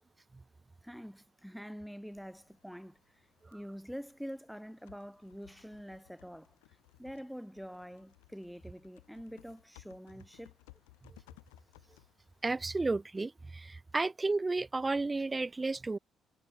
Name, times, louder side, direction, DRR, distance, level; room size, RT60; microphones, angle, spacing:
voice 1, 0.8-10.5, equal, ahead, 0.9 m, -46 dB
Typing, 2.0-13.1, left 28 dB, 80° left, 0.9 m, -62 dB
voice 2, 12.4-16.0, right 3 dB, 25° right, 0.5 m, -32 dB
hypercardioid pair, 45°, 0 cm